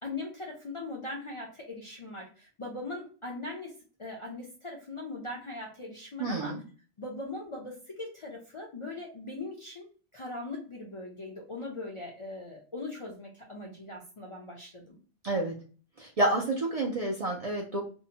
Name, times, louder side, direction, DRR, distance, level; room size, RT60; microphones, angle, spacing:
voice 1, 0.0-3.7 4.0-6.6 7.0-9.9 10.1-15.0, left 2 dB, 45° left, -2 dB, 0.4 m, -40 dB
voice 2, 6.2-6.6 15.2-15.5 16.0-17.8, right 2 dB, 50° right, -1 dB, 0.4 m, -29 dB
2.7 x 2.1 x 2.6 m, 0.39 s
omnidirectional pair, 1.1 m